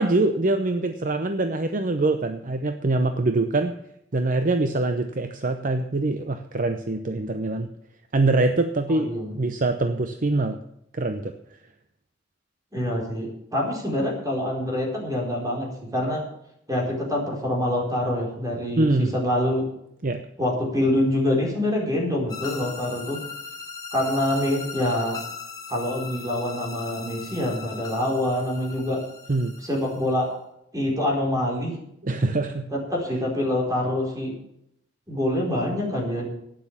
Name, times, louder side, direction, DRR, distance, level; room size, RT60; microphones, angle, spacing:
voice 1, 0.0-3.7 4.1-7.7 8.1-9.1 9.3-10.6 10.9-11.3 18.8-19.1 20.0-20.2 29.3-29.5 32.0-32.7, right 2 dB, 45° right, 8 dB, 0.7 m, -24 dB
voice 2, 8.9-9.4 12.7-16.2 16.7-19.6 20.4-23.2 23.9-25.2 25.7-29.0 29.6-30.3 30.7-31.8 32.7-34.3 35.1-36.3, left 1 dB, 20° right, -1 dB, 4.4 m, -25 dB
sound 1, 22.3-30.3, left 5 dB, 20° left, 2.4 m, -39 dB
12.0 x 9.5 x 7.3 m, 0.76 s
head